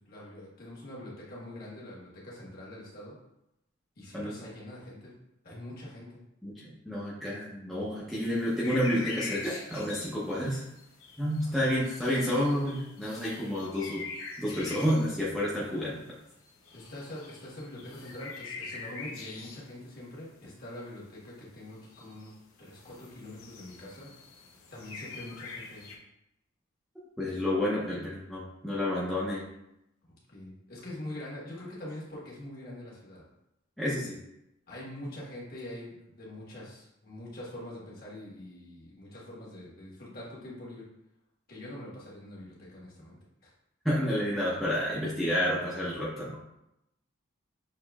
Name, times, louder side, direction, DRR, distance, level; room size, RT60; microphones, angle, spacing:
voice 1, 0.1-3.2 4.0-5.1 5.4-6.1 11.4-11.7 16.7-22.3 22.6-24.1 24.7-25.9 30.3-33.3 34.7-40.9 41.5-43.5, left 1 dB, 45° left, -5 dB, 1.4 m, -44 dB
voice 2, 6.4-10.6 11.2-14.0 14.4-16.0 27.2-29.4 33.8-34.2 43.8-46.4, equal, ahead, -8 dB, 0.6 m, -30 dB
sound 1, 8.1-19.8 20.2-20.3 20.9-21.0 21.3-21.4 21.7-22.3 22.6-26.0, left 4 dB, 90° left, 0.7 m, -44 dB
6.4 x 3.0 x 2.3 m, 0.85 s
head